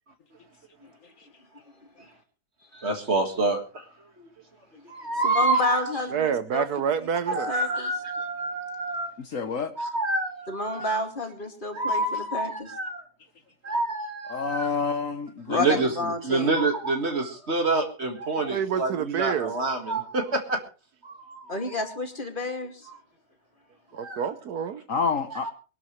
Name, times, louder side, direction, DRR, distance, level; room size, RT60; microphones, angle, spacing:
voice 1, 2.7-3.8 4.2-4.3 4.8-5.8 7.3-9.1 9.8-11.0 11.7-13.0 13.6-14.7 15.5-15.9 16.2-20.6 21.0-21.6 24.0-24.2 25.4-25.5, right 2 dB, 40° right, 2.1 m, -27 dB
voice 2, 5.2-6.7 7.5-7.9 10.5-12.7 15.5-16.6 21.5-22.9, left 2 dB, 30° left, 2.4 m, -30 dB
voice 3, 6.1-7.5 18.5-19.5 23.9-24.8, right 7 dB, 75° right, 1.4 m, -28 dB
voice 4, 9.2-9.7 14.3-15.6 24.9-25.5, left 5 dB, 55° left, 1.3 m, -28 dB
23.0 x 12.0 x 3.2 m
omnidirectional pair, 1.7 m